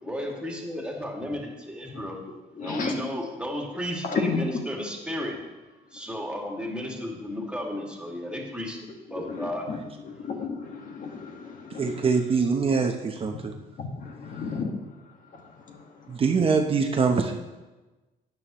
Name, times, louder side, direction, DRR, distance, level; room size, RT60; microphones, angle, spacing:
voice 1, 0.0-2.2 2.6-5.3 5.9-8.8 9.1-9.7, left 1 dB, 5° right, -1 dB, 2.2 m, -33 dB
voice 2, 2.6-2.9 4.0-4.5 9.1-12.1 13.3-13.4 13.8-14.7 15.3-15.4 15.7-15.8, left 4 dB, 50° left, 2 dB, 1.6 m, -33 dB
voice 3, 11.8-13.5 16.1-17.3, right 5 dB, 35° right, 3 dB, 0.8 m, -23 dB
12.5 x 9.2 x 3.1 m, 1.2 s
cardioid pair, 110°, 17 cm